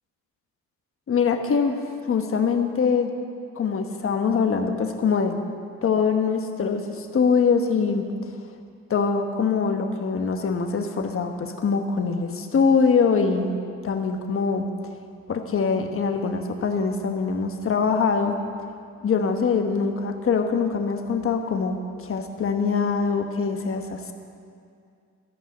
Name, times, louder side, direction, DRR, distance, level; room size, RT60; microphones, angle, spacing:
voice 1, 1.1-3.1 3.6-5.4 5.8-8.1 8.9-13.5 13.8-14.7 15.3-18.4 19.0-24.1, left 5 dB, 45° left, 5 dB, 1.2 m, -23 dB
14.5 x 5.5 x 8.3 m, 2.3 s
cardioid pair, 90°, 30 cm